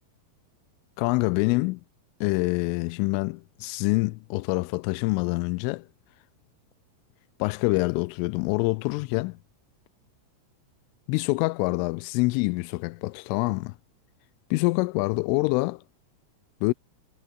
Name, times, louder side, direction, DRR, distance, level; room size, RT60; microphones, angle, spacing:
voice 1, 1.0-1.8 2.2-5.9 7.4-9.4 11.1-13.8 14.5-15.8 16.6-16.7, left 25 dB, 85° left, 3.0 m, -26 dB
omnidirectional pair, 5.8 m